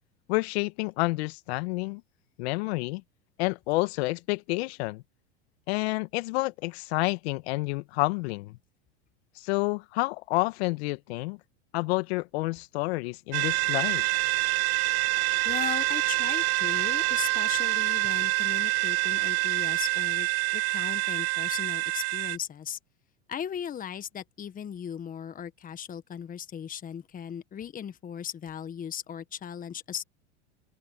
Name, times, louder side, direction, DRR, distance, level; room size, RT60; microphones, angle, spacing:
voice 1, 0.3-2.0 2.4-3.0 3.4-5.0 5.7-8.6 9.4-11.4 11.7-14.0, left 23 dB, 65° left, 1.7 m, -29 dB
sound 1, 13.3-22.4, right 23 dB, 45° right, 1.3 m, -26 dB
voice 2, 15.4-22.8 23.3-30.0, left 9 dB, 25° left, 1.4 m, -37 dB
open air
hypercardioid pair, 110°, 35 cm